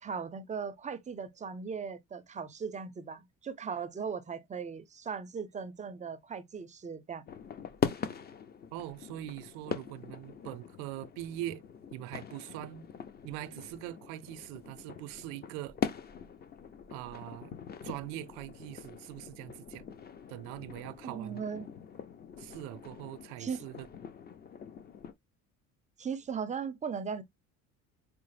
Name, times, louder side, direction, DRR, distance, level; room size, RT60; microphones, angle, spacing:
voice 1, 0.0-7.2 21.0-21.7 23.4-23.6 26.0-27.2, right 6 dB, 20° right, 0.5 m, -38 dB
sound 1, 7.3-25.1, left 7 dB, 30° left, 0.5 m, -42 dB
voice 2, 8.7-11.6 11.9-12.8 13.2-15.8 16.9-17.6 17.8-19.8 20.3-21.4 22.4-23.9, right 14 dB, 90° right, 0.5 m, -42 dB
4.6 x 2.0 x 3.1 m
cardioid pair, 105°, 34 cm